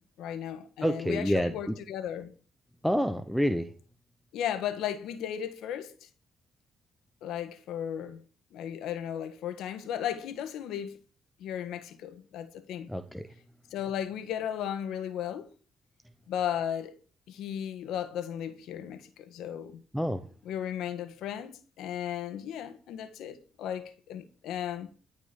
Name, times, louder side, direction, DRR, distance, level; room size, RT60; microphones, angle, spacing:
voice 1, 0.2-2.3 4.3-6.1 7.2-8.2 8.5-11.0 11.4-12.9 13.7-15.5 16.3-17.0 17.3-19.8 20.4-24.9, left 9 dB, 85° left, 1.6 m, -35 dB
voice 2, 0.8-1.5 2.8-3.7 12.9-13.2 19.9-20.2, equal, ahead, 1.1 m, -27 dB
13.5 x 5.3 x 8.5 m
cardioid pair, 90°, 0 cm